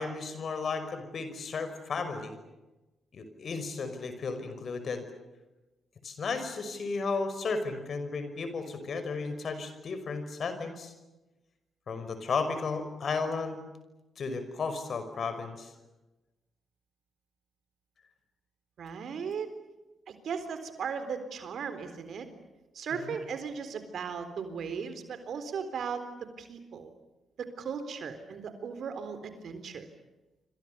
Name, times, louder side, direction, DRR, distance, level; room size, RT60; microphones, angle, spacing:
voice 1, 0.0-2.3 3.1-5.0 6.0-10.9 11.9-13.6 14.2-15.7 22.9-23.2, left 4 dB, 60° left, 9 dB, 5.6 m, -34 dB
voice 2, 18.8-19.5 20.1-22.3 22.7-26.9 27.4-29.9, right 6 dB, 65° right, 10 dB, 3.9 m, -37 dB
27.0 x 26.5 x 7.0 m, 1.1 s
hypercardioid pair, 40°, 0 cm